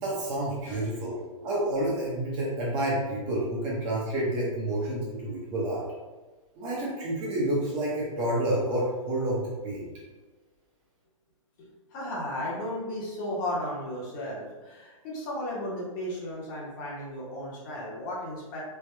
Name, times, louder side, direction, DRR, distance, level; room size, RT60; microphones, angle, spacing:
voice 1, 0.0-5.8 6.6-9.9, right 1 dB, 25° right, -5 dB, 0.7 m, -29 dB
voice 2, 11.9-18.6, left 1 dB, 35° left, -4 dB, 1.0 m, -34 dB
3.4 x 2.2 x 3.2 m, 1.3 s
hypercardioid pair, 150°, 18 cm